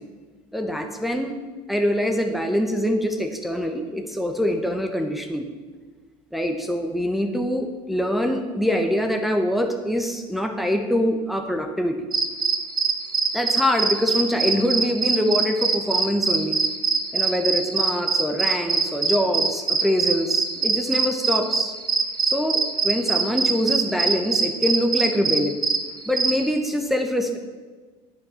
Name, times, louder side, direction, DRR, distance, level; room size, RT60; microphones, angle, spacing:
voice 1, 0.5-1.3 1.7-5.5 6.3-12.0 13.3-16.6 17.1-21.8 22.2-25.6 26.1-27.4, equal, ahead, 4 dB, 1.1 m, -24 dB
sound 1, 12.1-26.5, right 4 dB, 25° right, 1.0 m, -23 dB
10.5 x 6.4 x 5.7 m, 1.4 s
hypercardioid pair, 75°, 16 cm